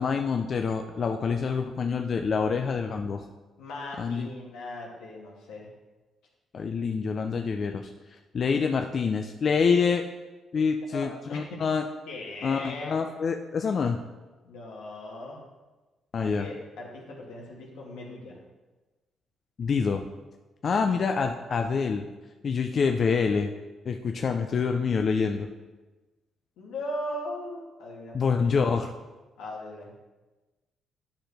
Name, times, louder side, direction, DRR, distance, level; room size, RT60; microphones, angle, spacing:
voice 1, 0.0-3.2 4.0-4.3 6.5-10.0 10.5-11.8 12.4-14.0 16.1-16.5 19.6-20.0 20.6-22.0 22.4-23.5 23.9-25.5 28.1-28.9, left 5 dB, 50° left, 5 dB, 0.5 m, -26 dB
voice 2, 3.6-5.7 10.9-11.6 12.1-13.0 14.4-15.4 16.2-18.4 26.6-28.5 29.4-29.9, left 1 dB, 90° left, -2 dB, 1.9 m, -38 dB
10.0 x 5.8 x 3.4 m, 1.2 s
cardioid pair, 90°, 0 cm